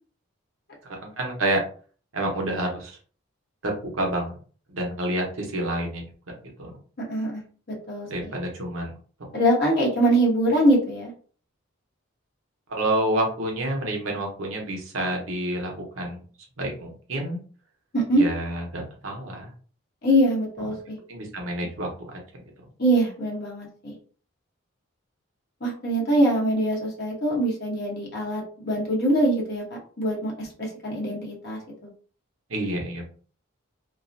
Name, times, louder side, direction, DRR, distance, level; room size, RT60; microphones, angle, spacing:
voice 1, 0.9-1.6 2.1-2.9 3.6-4.4 4.7-6.0 6.6-6.7 8.1-8.9 12.7-16.2 16.6-17.4 18.1-19.5 21.1-22.4 32.5-33.0, right 1 dB, 70° right, 1 dB, 0.8 m, -28 dB
voice 2, 7.1-7.4 7.7-8.3 9.3-11.1 17.9-18.2 20.0-21.0 22.8-23.9 25.6-29.6 30.0-31.9, right 1 dB, 50° left, -2 dB, 0.9 m, -23 dB
2.4 x 2.0 x 2.5 m, 0.42 s
head